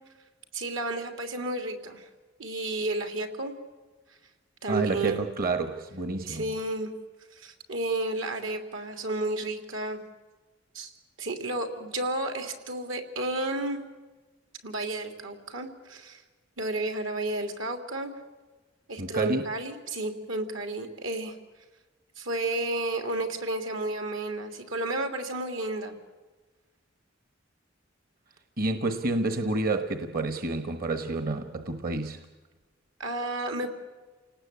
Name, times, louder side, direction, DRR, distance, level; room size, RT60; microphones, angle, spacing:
voice 1, 0.5-2.1 2.4-3.5 4.6-5.2 6.3-6.9 7.3-10.0 10.7-10.9 11.2-13.8 14.6-16.2 16.6-18.1 18.9-21.4 22.2-25.9 33.0-33.7, right 2 dB, 80° right, 3.3 m, -32 dB
voice 2, 4.7-6.5 19.0-19.4 28.6-32.3, right 2 dB, 50° right, 1.2 m, -29 dB
29.0 x 19.0 x 8.5 m
head